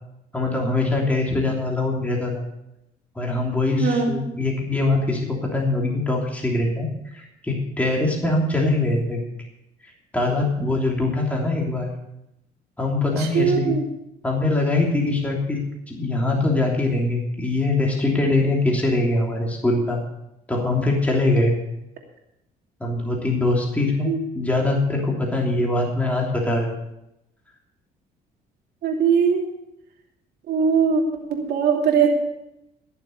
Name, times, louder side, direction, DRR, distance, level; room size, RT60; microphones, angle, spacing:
voice 1, 0.3-2.4 3.1-9.2 10.1-11.9 12.8-13.7 14.2-15.6 15.9-20.0 20.5-21.5 22.8-26.8, left 2 dB, 10° left, -2 dB, 3.1 m, -22 dB
voice 2, 3.8-4.2 13.2-13.8 24.1-24.2 28.8-29.5 30.5-31.0 31.3-32.1, right 6 dB, 70° right, 0 dB, 2.8 m, -20 dB
18.0 x 7.2 x 6.5 m, 0.84 s
cardioid pair, 110°, 17 cm